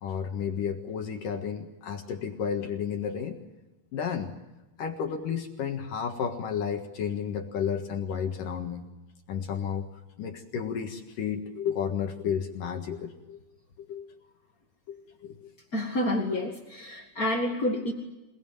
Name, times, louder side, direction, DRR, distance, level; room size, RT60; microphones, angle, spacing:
voice 1, 0.0-3.4 3.9-4.3 4.8-8.8 9.3-9.9 10.2-13.4 13.9-14.1 14.9-15.5, left 7 dB, 65° left, 4 dB, 3.0 m, -32 dB
voice 2, 15.7-17.9, left 1 dB, 35° left, 1 dB, 1.6 m, -29 dB
28.5 x 20.0 x 9.1 m, 1.1 s
omnidirectional pair, 4.4 m